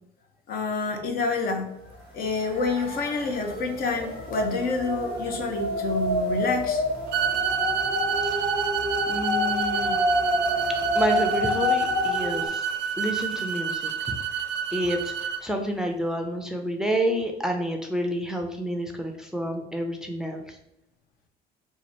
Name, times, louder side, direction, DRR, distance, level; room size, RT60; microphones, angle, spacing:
voice 1, 0.5-1.7 2.1-6.8, left 3 dB, 60° left, 4 dB, 0.7 m, -28 dB
sound 1, 1.9-2.0 2.2-12.5, left 1 dB, 90° left, 1.4 m, -28 dB
sound 2, 7.1-15.4, right 8 dB, 85° right, 0.5 m, -29 dB
voice 2, 8.2-8.7 9.1-10.0 10.9-12.7 13.0-13.9 14.7-20.6, equal, 5° right, 3 dB, 0.4 m, -29 dB
3.0 x 2.5 x 4.1 m, 0.80 s
cardioid pair, 110°, 17 cm